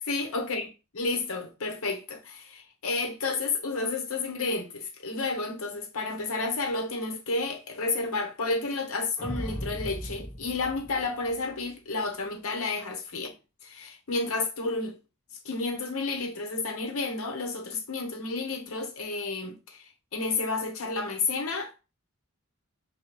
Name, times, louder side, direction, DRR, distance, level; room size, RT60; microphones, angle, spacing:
voice 1, 0.1-0.7 1.0-13.3 13.6-14.9 15.4-21.8, left 3 dB, 75° left, 0.9 m, -31 dB
sound 1, 9.2-11.7, equal, 15° left, 1.0 m, -37 dB
6.6 x 2.2 x 3.0 m
head